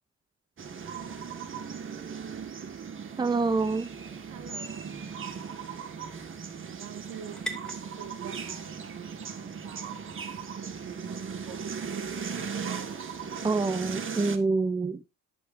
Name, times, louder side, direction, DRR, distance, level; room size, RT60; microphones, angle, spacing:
sound 1, 0.6-14.4, right 6 dB, 40° right, 1.8 m, -38 dB
voice 1, 3.2-3.9 13.4-15.0, right 3 dB, 15° right, 0.7 m, -26 dB
sound 2, 3.8-11.7, right 1 dB, 5° left, 2.6 m, -48 dB
voice 2, 4.3-5.0 6.6-7.5 8.0-10.0 10.6-12.0, right 8 dB, 75° right, 2.1 m, -46 dB
11.0 x 8.3 x 2.7 m
cardioid pair, 90°, 30 cm